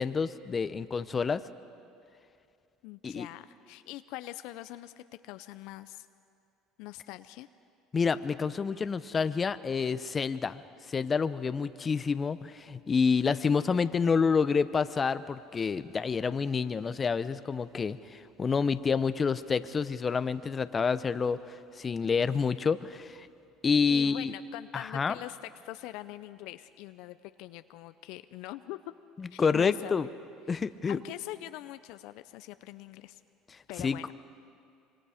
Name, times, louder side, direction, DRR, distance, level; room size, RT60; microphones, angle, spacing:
voice 1, 0.0-1.4 3.0-3.3 7.9-10.6 10.9-23.3 23.6-24.3 24.7-25.1 29.2-30.1 30.5-31.0 33.8-34.0, left 5 dB, 30° left, 13 dB, 0.8 m, -28 dB
voice 2, 2.8-6.1 6.8-7.5 23.9-25.4 25.6-28.8 29.3-30.0 30.9-33.2 33.7-34.1, left 16 dB, 75° left, 12 dB, 0.5 m, -43 dB
25.5 x 24.0 x 5.0 m, 2.5 s
supercardioid pair, 90°, 0 cm